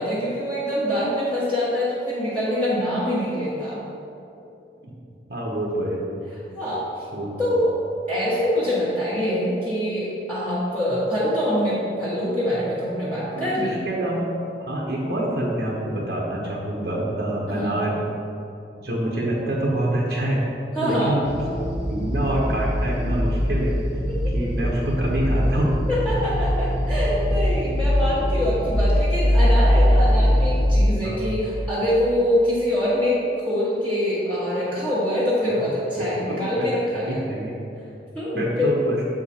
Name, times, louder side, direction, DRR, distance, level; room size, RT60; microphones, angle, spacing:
voice 1, 0.0-3.8 6.6-7.0 7.4-7.7 8.1-13.8 17.5-17.7 20.7-21.1 24.1-24.2 24.6-24.8 25.9-33.2 33.4-37.2 38.1-38.7, equal, 10° left, -12 dB, 1.3 m, -24 dB
voice 2, 5.3-6.0 7.1-7.3 13.3-14.3 14.6-18.0 18.8-20.4 20.8-21.4 21.9-23.7 24.3-25.7 31.0-31.3 35.5-35.7 36.0-36.5 36.9-37.5 38.4-39.0, right 1 dB, 65° right, -4 dB, 1.0 m, -26 dB
sound 1, 21.2-30.8, equal, 85° right, 1.1 m, -21 dB
7.7 x 5.0 x 4.2 m, 2.8 s
head